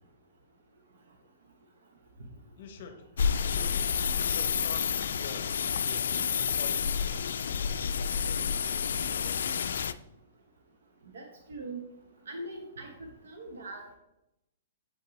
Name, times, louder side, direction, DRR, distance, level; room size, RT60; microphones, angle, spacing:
voice 1, 2.6-3.0 3.4-4.8 5.1-9.5, left 6 dB, 50° left, 7 dB, 0.7 m, -48 dB
sound 1, 3.2-9.9, left 7 dB, 80° left, 0.3 m, -29 dB
voice 2, 11.1-11.8 12.3-14.0, right 2 dB, 85° right, 3 dB, 1.0 m, -41 dB
7.6 x 5.4 x 3.1 m, 0.90 s
hypercardioid pair, 165°, 0 cm